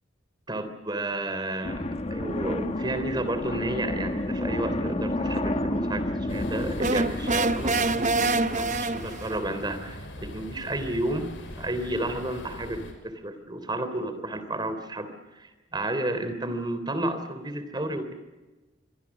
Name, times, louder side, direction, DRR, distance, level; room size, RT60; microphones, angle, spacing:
voice 1, 0.5-11.3 11.6-18.1, right 1 dB, 20° right, 10 dB, 3.2 m, -32 dB
sound 1, 1.6-9.1, left 1 dB, 30° left, 1.3 m, -31 dB
sound 2, 6.3-12.9, left 1 dB, 75° left, 6.0 m, -40 dB
sound 3, 6.8-9.4, right 3 dB, 40° right, 0.7 m, -26 dB
26.5 x 24.0 x 7.2 m, 1.2 s
head